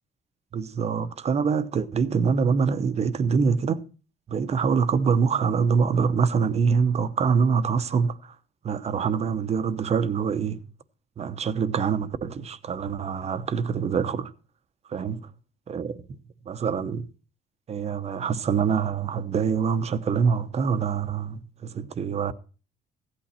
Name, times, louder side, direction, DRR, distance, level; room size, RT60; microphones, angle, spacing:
voice 1, 0.5-3.8 4.3-8.3 8.6-10.7 11.2-14.3 14.9-15.3 15.7-16.0 16.5-17.1 17.7-22.3, right 6 dB, 40° right, 0.9 m, -25 dB
15.5 x 8.7 x 4.3 m
cardioid pair, 110°, 17 cm